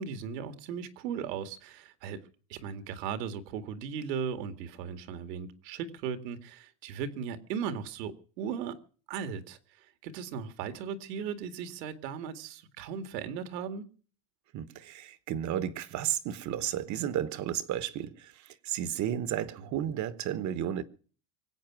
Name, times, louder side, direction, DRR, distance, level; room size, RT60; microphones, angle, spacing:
voice 1, 0.0-2.2 2.5-8.8 9.1-13.9, right 7 dB, 75° right, 2.2 m, -37 dB
voice 2, 14.5-18.3 18.6-20.8, right 10 dB, 35° right, 1.2 m, -33 dB
24.0 x 8.4 x 6.1 m
supercardioid pair, 135°, 49 cm